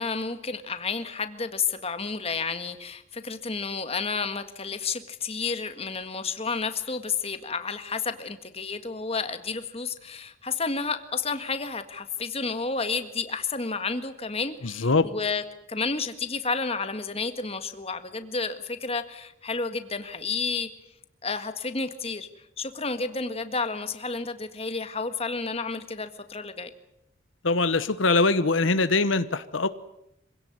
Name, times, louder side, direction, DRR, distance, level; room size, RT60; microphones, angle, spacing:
voice 1, 0.0-20.7 21.2-22.3 22.6-26.7, left 4 dB, 30° left, 9 dB, 1.8 m, -31 dB
voice 2, 27.4-29.7, left 3 dB, 80° left, 13 dB, 1.1 m, -22 dB
26.0 x 17.5 x 9.8 m, 0.81 s
head